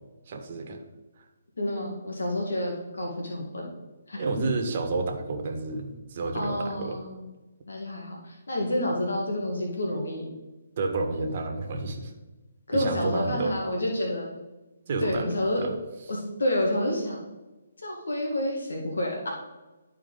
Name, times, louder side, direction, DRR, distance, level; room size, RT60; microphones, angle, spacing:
voice 1, 0.3-0.8 4.1-7.0 10.8-12.1 12.7-13.5 14.9-15.3 15.6-15.7, right 3 dB, 45° right, 3 dB, 1.3 m, -30 dB
voice 2, 1.6-3.7 4.1-4.4 6.3-7.3 7.7-10.3 12.7-14.3 15.0-15.6 16.1-17.2 17.8-19.3, left 1 dB, 90° left, -1 dB, 1.7 m, -29 dB
11.5 x 4.5 x 3.9 m, 1.1 s
hypercardioid pair, 155°, 0 cm